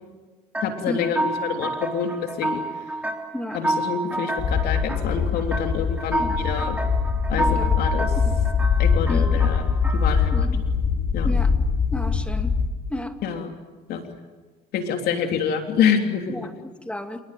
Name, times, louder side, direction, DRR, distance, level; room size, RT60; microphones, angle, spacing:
sound 1, 0.5-10.5, right 2 dB, 10° right, 3.6 m, -30 dB
voice 1, 0.6-2.6 3.5-6.8 7.3-8.1 8.8-10.5 11.1-11.3 13.2-13.5 13.9-14.0 14.7-16.5, left 7 dB, 70° left, 4 dB, 3.3 m, -27 dB
sound 2, 4.4-12.7, left 6 dB, 50° left, 3.8 m, -22 dB
voice 2, 7.4-7.8 8.2-8.4 9.0-9.2 10.3-10.6 11.2-11.5 11.9-12.5 12.9-13.1 16.3-17.2, left 1 dB, 5° left, 6 dB, 2.6 m, -32 dB
29.5 x 18.5 x 9.3 m, 1.3 s
cardioid pair, 95°, 17 cm